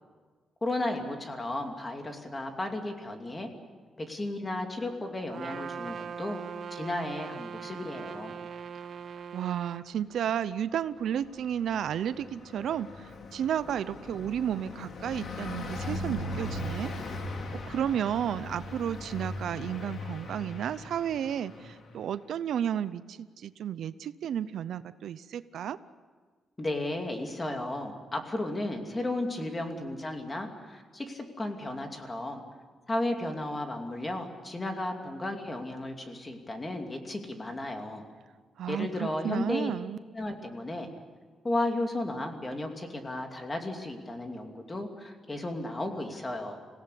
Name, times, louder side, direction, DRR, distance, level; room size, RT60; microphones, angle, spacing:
voice 1, 0.6-3.5 4.0-6.4 6.7-8.4 26.6-32.4 32.9-38.0 38.7-39.7 40.2-40.9 41.4-46.6, left 1 dB, 20° left, 4 dB, 2.6 m, -34 dB
Trumpet, 5.3-9.9, right 7 dB, 50° right, 1.0 m, -40 dB
voice 2, 9.3-16.9 17.5-25.8 38.6-40.0, right 9 dB, 70° right, 14 dB, 0.6 m, -32 dB
Car passing by, 11.0-22.0, left 2 dB, 55° left, 2.7 m, -39 dB
26.5 x 17.0 x 8.5 m, 1.5 s
cardioid pair, 140°, 0 cm